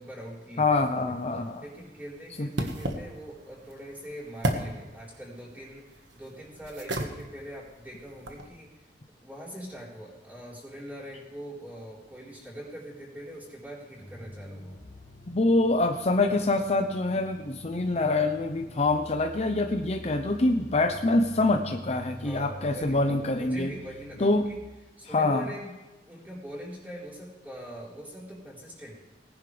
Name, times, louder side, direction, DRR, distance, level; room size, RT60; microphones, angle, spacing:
voice 1, 0.0-1.1 1.6-8.7 9.2-14.8 22.2-24.6 25.0-25.7 26.1-29.0, equal, 10° right, -4 dB, 4.4 m, -43 dB
voice 2, 0.6-1.6 2.4-2.5 15.3-23.7 24.2-24.5 25.1-25.5, left 2 dB, 35° left, 5 dB, 0.7 m, -25 dB
sound 1, 0.8-8.5, right 1 dB, 80° right, 1.5 m, -37 dB
sound 2, 14.0-24.6, equal, 15° left, 2.8 m, -46 dB
19.5 x 10.5 x 3.4 m, 1.2 s
head